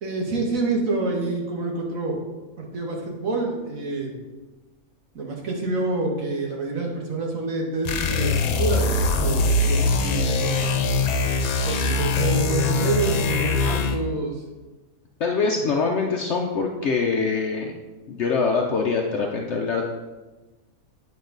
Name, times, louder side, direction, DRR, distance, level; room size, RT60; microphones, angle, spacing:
voice 1, 0.0-2.2 2.6-4.2 5.2-10.8 11.7-14.4, right 3 dB, 70° right, 0 dB, 1.8 m, -27 dB
sound 1, 7.8-14.1, left 3 dB, 90° left, 1.2 m, -22 dB
voice 2, 15.2-17.7 18.1-19.8, left 4 dB, 60° left, 2 dB, 0.9 m, -24 dB
9.1 x 5.4 x 3.9 m, 1.2 s
omnidirectional pair, 1.5 m